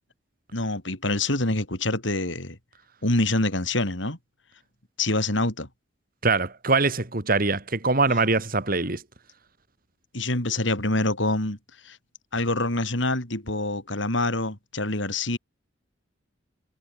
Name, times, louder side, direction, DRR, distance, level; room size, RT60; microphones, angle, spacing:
voice 1, 0.5-2.6 3.0-4.2 5.0-5.7 10.1-11.6 11.9-12.0 12.3-15.4, left 2 dB, 70° left, 5.4 m, -26 dB
voice 2, 6.2-9.0, right 3 dB, 50° right, 2.7 m, -23 dB
head